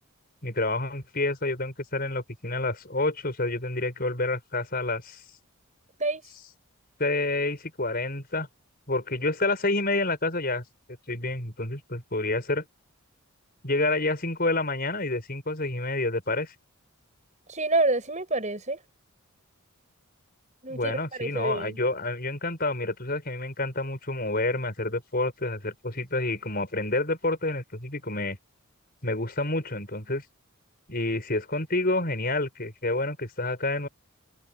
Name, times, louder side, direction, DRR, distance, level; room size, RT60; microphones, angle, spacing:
voice 1, 0.4-5.2 7.0-8.5 8.9-10.6 11.1-12.6 13.6-16.5 20.7-28.4 29.0-30.2 30.9-33.9, left 2 dB, 40° left, 5.8 m, -28 dB
voice 2, 17.5-18.8 20.6-20.9 21.2-21.8, right 2 dB, 30° right, 7.0 m, -27 dB
head